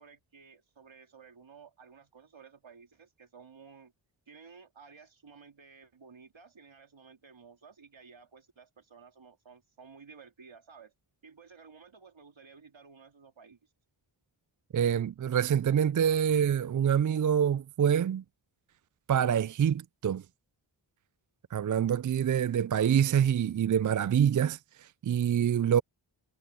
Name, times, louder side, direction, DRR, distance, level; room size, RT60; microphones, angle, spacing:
voice 1, 0.0-3.9 4.3-10.9 11.2-13.7, right 5 dB, 70° right, 2.6 m, -54 dB
voice 2, 14.7-18.2 19.1-20.2 21.5-25.8, right 8 dB, 40° right, 0.4 m, -26 dB
cardioid pair, 40°, 48 cm